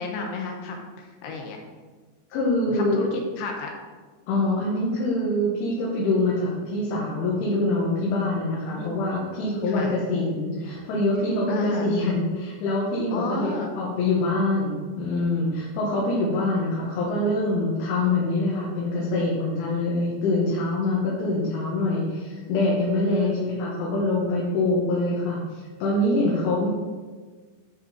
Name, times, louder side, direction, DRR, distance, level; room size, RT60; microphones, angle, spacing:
voice 1, 0.0-1.6 2.7-3.7 8.8-8.9 9.3-9.4 9.7-9.9 11.5-11.9 13.1-13.8 23.1-23.5, left 3 dB, 70° left, 1 dB, 3.1 m, -32 dB
voice 2, 2.3-3.0 4.3-26.7, left 2 dB, 85° left, -6 dB, 4.1 m, -25 dB
11.0 x 5.8 x 4.4 m, 1.4 s
omnidirectional pair, 5.3 m